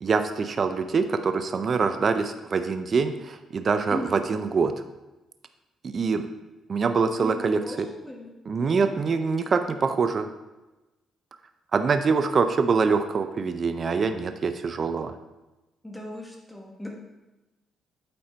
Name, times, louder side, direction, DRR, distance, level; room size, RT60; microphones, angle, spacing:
voice 1, 0.0-4.7 5.8-6.2 6.7-7.9 8.5-10.3 11.7-15.1, right 5 dB, 45° right, 8 dB, 0.5 m, -24 dB
voice 2, 7.2-8.3 8.6-8.9 15.8-16.9, equal, 5° left, -1 dB, 1.3 m, -37 dB
8.5 x 4.4 x 4.4 m, 1.1 s
cardioid pair, 90°, 0 cm